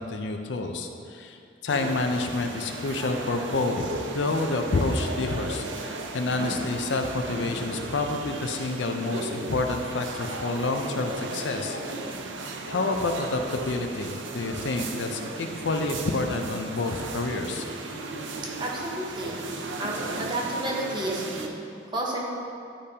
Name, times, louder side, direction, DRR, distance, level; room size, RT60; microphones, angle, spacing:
voice 1, 0.0-1.4 1.6-3.8 4.1-11.8 12.7-17.7, left 2 dB, 80° left, 4 dB, 0.5 m, -28 dB
sound 1, 1.7-21.5, right 2 dB, 85° right, 0.6 m, -36 dB
voice 2, 18.6-19.4 19.8-22.3, right 1 dB, 25° right, -2 dB, 0.9 m, -31 dB
10.0 x 5.1 x 2.8 m, 2.5 s
head